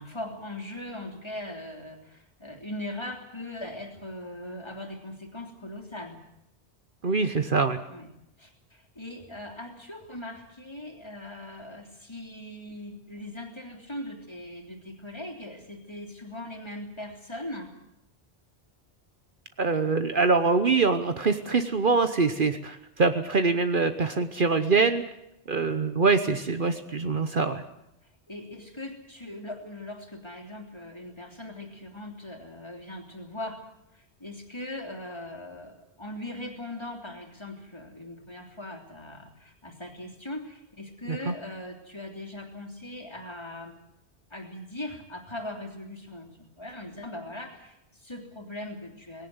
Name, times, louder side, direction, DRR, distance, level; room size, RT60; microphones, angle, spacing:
voice 1, 0.0-6.2 7.9-8.1 8.4-17.7 28.0-43.7 44.3-49.3, left 1 dB, 25° left, 2 dB, 3.2 m, -40 dB
voice 2, 7.0-7.8 19.6-25.0 25.5-27.6 41.1-41.3, right 4 dB, 50° right, 9 dB, 1.1 m, -24 dB
19.0 x 17.5 x 9.6 m, 0.83 s
omnidirectional pair, 1.1 m